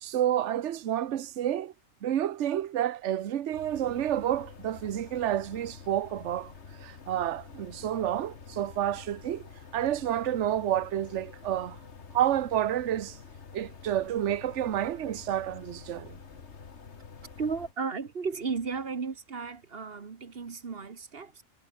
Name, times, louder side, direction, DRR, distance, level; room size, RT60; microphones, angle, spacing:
voice 1, 0.0-1.7 2.0-6.5 6.8-9.4 9.7-11.8 12.1-13.2 13.5-16.2, right 11 dB, 60° right, 1.1 m, -29 dB
sound 1, 3.5-17.7, left 5 dB, 50° left, 1.8 m, -48 dB
voice 2, 17.4-21.4, right 5 dB, 45° right, 1.5 m, -34 dB
omnidirectional pair, 1.5 m